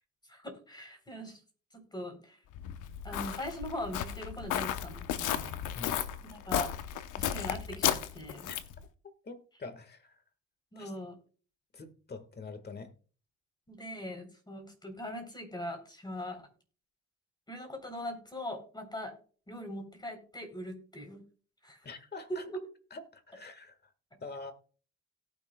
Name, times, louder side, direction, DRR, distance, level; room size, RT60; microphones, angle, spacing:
voice 1, 0.3-1.4 1.7-2.4 3.0-5.5 6.2-6.7 7.2-8.5 10.7-11.2 13.7-16.5 17.5-19.1 19.5-21.2 21.6-21.8 22.3-22.6, equal, 15° left, 3.6 m, -41 dB
Walk footsteps, 2.5-8.8, left 10 dB, 90° left, 0.9 m, -34 dB
voice 2, 9.2-10.2 10.8-10.9 11.7-12.9 21.8-22.4 22.9-23.8 24.2-24.5, left 3 dB, 35° left, 1.6 m, -45 dB
17.5 x 6.3 x 2.3 m
cardioid pair, 90°, 30 cm